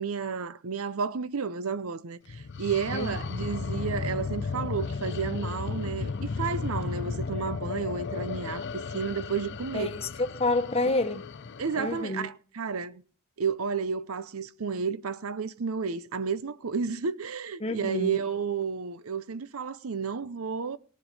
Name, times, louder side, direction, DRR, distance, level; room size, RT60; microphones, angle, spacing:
voice 1, 0.0-9.9 11.6-13.0 13.4-20.8, right 5 dB, 70° right, 0.7 m, -32 dB
sound 1, 2.3-12.0, left 4 dB, 55° left, 0.5 m, -34 dB
voice 2, 9.7-11.3 11.8-12.3 17.6-18.2, left 2 dB, 30° left, 1.1 m, -29 dB
18.5 x 7.3 x 4.1 m
head